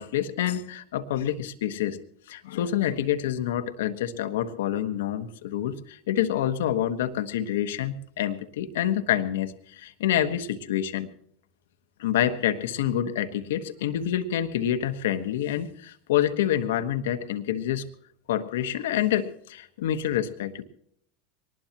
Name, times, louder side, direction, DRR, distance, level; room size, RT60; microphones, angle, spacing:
voice 1, 0.0-2.0 2.3-11.1 12.0-17.8 18.3-20.7, left 11 dB, 75° left, 10 dB, 1.4 m, -27 dB
23.5 x 19.5 x 3.0 m, 0.67 s
hypercardioid pair, 90°, 0 cm